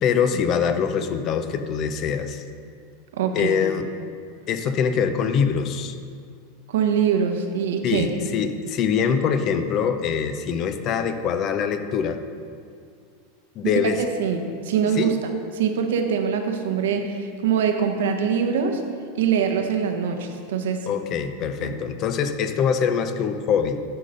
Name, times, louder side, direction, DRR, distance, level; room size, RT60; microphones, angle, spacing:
voice 1, 0.0-2.4 3.3-3.9 4.5-5.9 7.8-12.2 13.6-14.0 15.0-15.1 20.9-23.8, left 7 dB, 40° left, 9 dB, 0.5 m, -24 dB
voice 2, 3.2-3.6 6.7-8.3 14.0-18.8 19.1-20.9 21.6-21.7, right 7 dB, 80° right, 5 dB, 0.8 m, -23 dB
9.7 x 3.9 x 5.3 m, 2.2 s
supercardioid pair, 135°, 0 cm